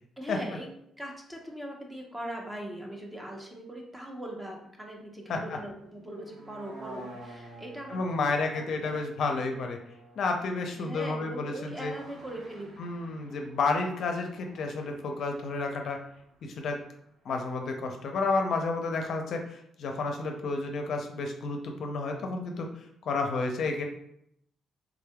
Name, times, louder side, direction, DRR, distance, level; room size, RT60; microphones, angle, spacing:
voice 1, 0.2-0.7 1.0-9.0 9.4-9.6 10.8-12.8, right 1 dB, 15° right, 0 dB, 0.8 m, -41 dB
sound 1, 6.0-17.1 17.4-17.5, right 1 dB, 75° right, 1.1 m, -51 dB
voice 2, 7.9-9.8 10.2-11.9 12.8-16.0 16.4-16.8 17.3-22.7 23.0-23.8, left 3 dB, 65° left, 3 dB, 0.5 m, -31 dB
3.5 x 3.3 x 2.3 m, 0.75 s
cardioid pair, 90°, 0 cm